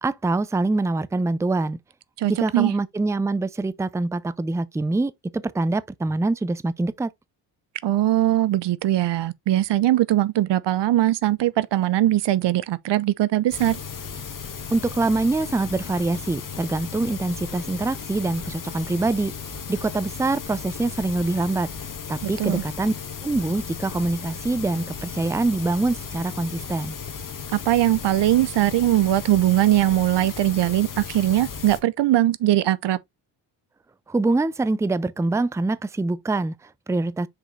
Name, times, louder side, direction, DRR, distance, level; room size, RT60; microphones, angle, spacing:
voice 1, 0.0-1.8 2.3-7.1 14.7-19.3 19.7-21.7 22.1-22.9 23.2-27.0 34.1-37.3, right 2 dB, 5° right, 0.5 m, -24 dB
voice 2, 2.2-2.7 7.8-13.8 22.2-22.6 27.5-33.0, right 14 dB, 70° right, 0.7 m, -21 dB
sound 1, 13.5-31.8, left 6 dB, 45° left, 1.7 m, -35 dB
6.3 x 4.9 x 3.2 m
cardioid pair, 85°, 43 cm